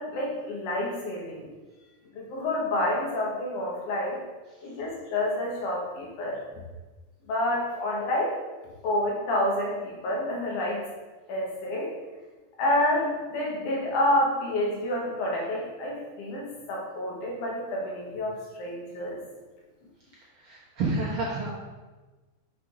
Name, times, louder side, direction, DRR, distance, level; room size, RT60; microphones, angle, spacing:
voice 1, 0.0-1.5 2.1-4.2 4.6-6.4 7.3-8.4 8.8-10.8 11.3-12.0 12.6-19.2, left 1 dB, 80° left, -3 dB, 2.9 m, -28 dB
voice 2, 20.3-21.5, right 3 dB, 55° right, -6 dB, 1.6 m, -30 dB
6.4 x 4.5 x 5.0 m, 1.2 s
omnidirectional pair, 3.6 m